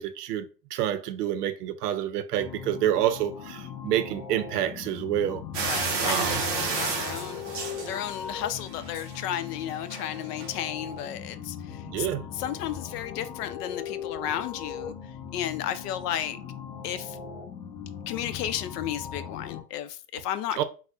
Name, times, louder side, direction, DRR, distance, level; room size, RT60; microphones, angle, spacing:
voice 1, 0.0-6.4 11.9-12.2 20.6-20.7, right 11 dB, 70° right, 0.6 m, -28 dB
sound 1, 2.3-19.6, left 7 dB, 30° left, 0.7 m, -39 dB
sound 2, 5.5-8.4 8.8-9.2 9.9-10.0 10.4-10.5, right 4 dB, 25° right, 0.3 m, -30 dB
voice 2, 5.6-12.1 12.4-14.9 15.3-16.4 16.8-17.2 18.1-20.6, left 11 dB, 70° left, 0.6 m, -33 dB
4.1 x 2.1 x 2.4 m
hypercardioid pair, 130°, 50 cm